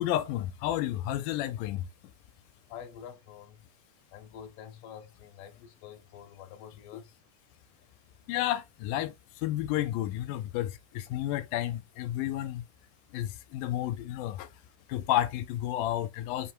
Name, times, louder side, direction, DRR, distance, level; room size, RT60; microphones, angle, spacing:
voice 1, 0.0-1.9 6.9-7.0 8.3-12.7 13.1-14.5 14.9-16.5, left 13 dB, 90° left, 2.1 m, -31 dB
voice 2, 2.7-3.6 4.1-7.2, left 8 dB, 70° left, 1.5 m, -47 dB
5.2 x 2.1 x 4.4 m
omnidirectional pair, 3.6 m